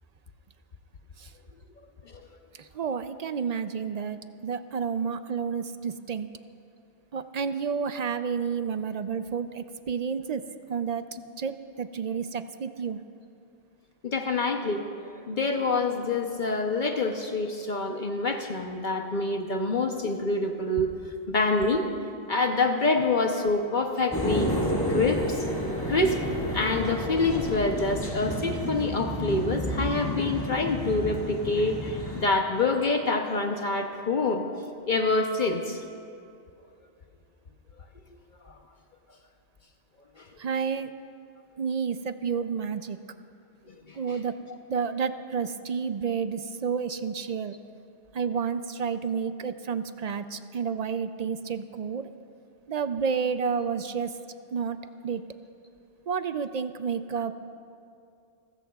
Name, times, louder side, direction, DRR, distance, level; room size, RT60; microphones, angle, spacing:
voice 1, 2.6-6.3 7.1-10.4 10.7-11.0 11.4-13.0 40.4-40.9 41.6-43.0 44.0-44.3 44.7-47.6 48.1-52.1 52.7-54.1 54.5-54.8 55.0-55.2 56.1-57.3, right 6 dB, 55° right, 11 dB, 0.4 m, -30 dB
voice 2, 14.0-20.9 21.3-21.9 22.3-24.5 24.9-25.4 25.8-26.2 26.5-34.4 34.9-35.8 40.2-40.3 43.9-44.2, left 3 dB, 50° left, 4 dB, 0.9 m, -26 dB
sound 1, 24.1-32.3, equal, 20° left, 1.8 m, -30 dB
28.5 x 15.0 x 2.3 m, 2.5 s
omnidirectional pair, 1.1 m